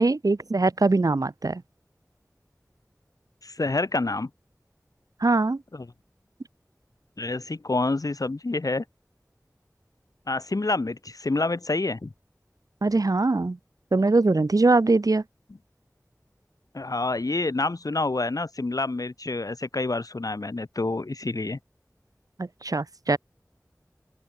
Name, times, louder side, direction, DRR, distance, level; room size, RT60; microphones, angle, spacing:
voice 1, 0.0-1.6 5.2-5.6 12.8-13.6 13.9-15.2 22.4-23.2, right 3 dB, 80° right, 1.1 m, -22 dB
voice 2, 3.4-4.3 5.7-5.8 7.2-8.8 10.3-12.1 16.7-21.6, left 2 dB, 80° left, 1.7 m, -28 dB
open air
wide cardioid pair, 45°, 6 cm